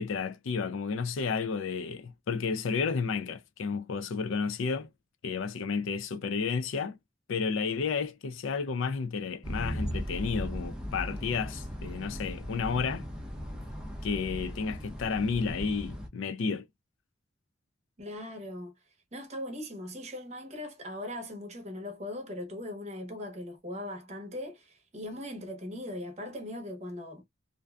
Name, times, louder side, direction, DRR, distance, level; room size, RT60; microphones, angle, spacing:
voice 1, 0.0-4.9 5.2-7.0 7.3-13.0 14.0-16.6, left 5 dB, 70° left, 0.4 m, -31 dB
sound 1, 9.4-16.1, equal, 5° right, 0.5 m, -37 dB
voice 2, 18.0-18.7 19.1-27.2, left 1 dB, 35° right, 0.8 m, -39 dB
2.6 x 2.2 x 2.3 m
head